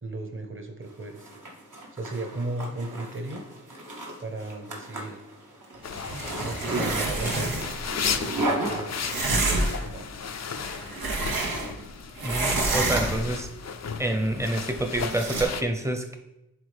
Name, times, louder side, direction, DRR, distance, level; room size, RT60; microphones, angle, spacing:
voice 1, 0.0-1.3 1.9-3.4 4.2-5.2 6.2-7.7 8.1-8.9 9.4-10.1, right 2 dB, 35° right, 4 dB, 1.2 m, -36 dB
Zipper (clothing), 0.9-9.6, right 1 dB, 55° right, 1.4 m, -34 dB
sound 1, 5.8-15.6, left 6 dB, 50° left, 0.5 m, -35 dB
sound 2, 5.9-7.8 9.0-9.9 10.5-11.9 12.2-13.4 15.1-15.4, right 2 dB, 85° right, 1.2 m, -28 dB
voice 2, 12.2-13.5 14.0-16.2, right 1 dB, 10° right, 5 dB, 0.8 m, -27 dB
10.5 x 3.9 x 3.5 m, 0.93 s
wide cardioid pair, 60°, 36 cm